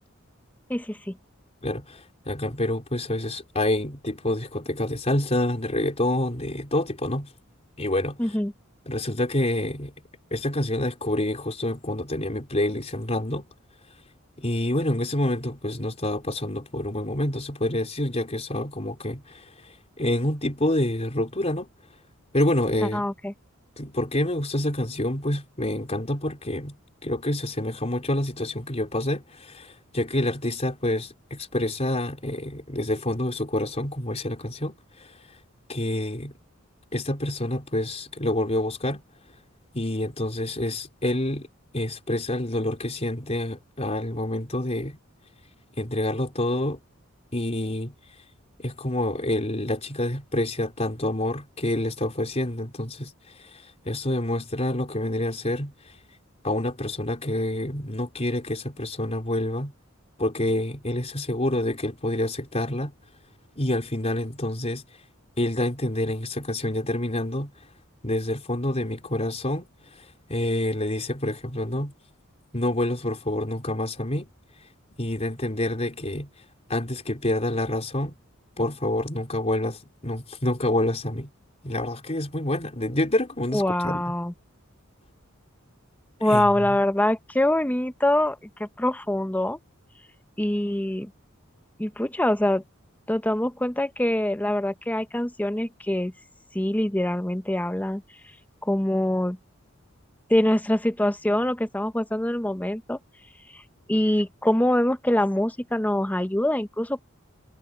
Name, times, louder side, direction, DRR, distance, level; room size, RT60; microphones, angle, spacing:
voice 1, 0.7-1.2 8.2-8.5 22.8-23.3 83.5-84.3 86.2-89.6 90.4-91.1 91.8-92.6 93.1-96.1 96.5-98.0 98.6-99.4 100.3-103.0 103.9-107.0, left 1 dB, 10° left, 0.8 m, -24 dB
voice 2, 1.6-7.3 7.8-8.2 8.9-9.9 10.3-13.5 14.4-19.4 20.0-21.7 22.3-23.1 23.8-26.8 27.0-34.8 35.0-35.1 35.7-36.3 36.9-39.0 39.7-41.5 41.7-45.0 45.8-46.8 47.3-47.9 48.6-53.1 53.4-53.5 53.8-55.7 56.4-59.7 60.2-62.9 63.6-64.8 65.4-67.5 68.0-69.7 70.3-71.9 72.5-74.3 75.0-76.3 76.7-78.2 78.6-81.3 81.6-84.0 86.3-86.7, left 1 dB, 30° left, 4.1 m, -27 dB
head